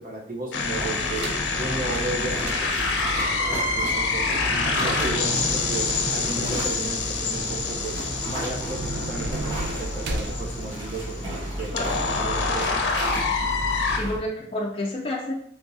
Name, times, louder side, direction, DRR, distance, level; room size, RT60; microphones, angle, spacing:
voice 1, 0.0-8.0 8.2-11.7 12.2-12.8, right 2 dB, 50° right, -2 dB, 0.8 m, -34 dB
sound 1, 0.5-14.0, left 4 dB, 90° left, 0.5 m, -27 dB
sound 2, 0.6-14.2, right 1 dB, 35° right, 1.3 m, -33 dB
sound 3, 1.2-1.5 2.0-10.4, right 1 dB, 70° right, 0.4 m, -35 dB
voice 2, 11.6-11.9 14.0-15.3, left 1 dB, 30° left, -2 dB, 0.3 m, -30 dB
3.4 x 2.9 x 2.7 m, 0.72 s
head